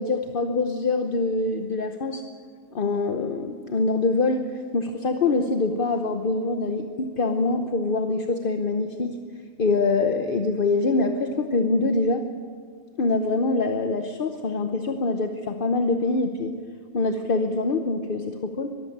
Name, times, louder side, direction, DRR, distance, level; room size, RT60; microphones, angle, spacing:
voice 1, 0.0-2.2 2.7-9.2 9.6-12.3 13.0-16.5 16.9-18.8, left 3 dB, 55° left, 6 dB, 1.1 m, -24 dB
23.0 x 14.5 x 8.7 m, 2.1 s
omnidirectional pair, 1.1 m